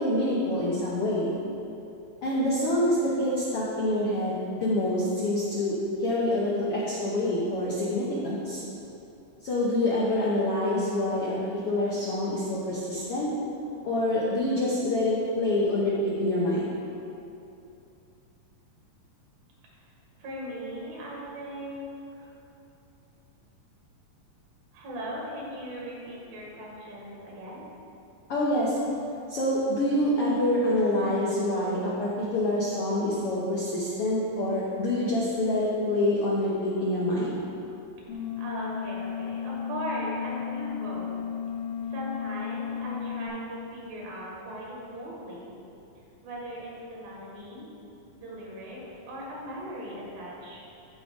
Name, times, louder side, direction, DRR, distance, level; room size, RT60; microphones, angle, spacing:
voice 1, 0.0-1.3 2.2-8.6 9.4-11.4 11.7-13.3 13.8-16.7 28.3-28.8 29.3-37.4, left 1 dB, 70° left, -6 dB, 1.3 m, -26 dB
voice 2, 20.2-22.3 24.7-27.7 38.4-41.1 41.8-45.6 46.2-47.7 48.1-48.8 49.1-50.6, equal, 75° right, -4 dB, 3.4 m, -38 dB
sound 1, 38.1-43.3, left 8 dB, 90° left, 3.3 m, -34 dB
14.0 x 4.9 x 3.7 m, 2.8 s
omnidirectional pair, 4.1 m